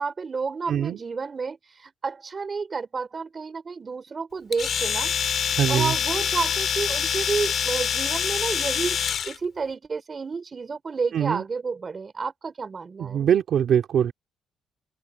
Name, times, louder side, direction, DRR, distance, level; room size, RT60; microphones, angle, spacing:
voice 1, 0.0-5.1 5.7-9.0 9.2-13.3, right 5 dB, 35° right, 3.9 m, -30 dB
voice 2, 0.7-1.0 5.5-6.0 11.1-11.4 13.0-14.1, right 9 dB, 65° right, 2.5 m, -22 dB
Domestic sounds home sounds, 4.5-9.4, left 8 dB, 55° left, 3.6 m, -25 dB
cardioid pair, 90°, 0 cm